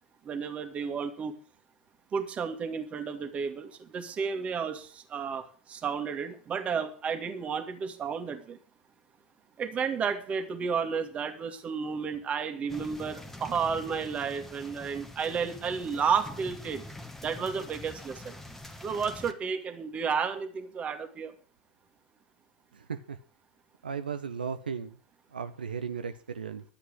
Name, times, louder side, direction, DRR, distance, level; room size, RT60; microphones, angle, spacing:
voice 1, 0.2-1.3 2.1-8.6 9.6-16.8 17.2-18.4 18.8-21.3, right 6 dB, 25° right, 7 dB, 2.0 m, -32 dB
sound 1, 12.7-19.3, left 1 dB, 5° left, 1.4 m, -45 dB
voice 2, 22.7-23.2 23.8-25.0 25.3-26.6, right 6 dB, 80° right, 8 dB, 0.8 m, -36 dB
12.0 x 8.2 x 7.6 m, 0.41 s
figure-of-eight pair, 95°, 5 cm